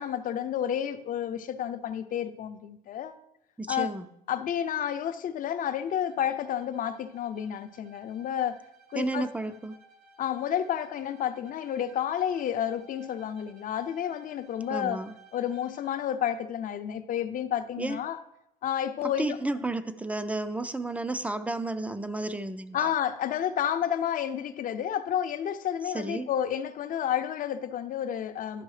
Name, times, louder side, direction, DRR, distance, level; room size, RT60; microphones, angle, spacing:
voice 1, 0.0-3.2 3.7-3.9 4.3-8.6 8.9-9.3 10.2-15.0 15.3-18.2 18.6-19.4 22.7-28.6, left 9 dB, 55° left, 0.6 m, -30 dB
voice 2, 3.6-4.1 8.9-9.8 14.7-15.1 17.8-18.0 19.0-22.9 25.9-26.3, right 2 dB, 10° right, 0.4 m, -32 dB
Bowed string instrument, 5.9-16.1, right 3 dB, 60° right, 0.8 m, -57 dB
11.5 x 5.3 x 3.3 m
cardioid pair, 110°, 17 cm